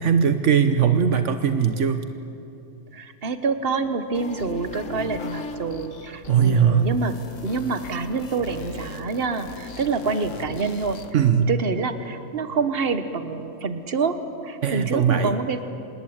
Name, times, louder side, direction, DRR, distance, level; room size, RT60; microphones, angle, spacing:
voice 1, 0.0-2.0 6.3-6.9 11.1-11.5 14.6-15.4, right 7 dB, 75° right, 9 dB, 1.2 m, -20 dB
voice 2, 2.9-7.1 7.4-11.0 11.5-14.2 14.4-15.6, right 4 dB, 50° right, 10 dB, 1.5 m, -27 dB
sound 1, 4.1-11.1, left 3 dB, 90° left, 1.8 m, -38 dB
26.5 x 20.0 x 8.9 m, 2.9 s
omnidirectional pair, 1.3 m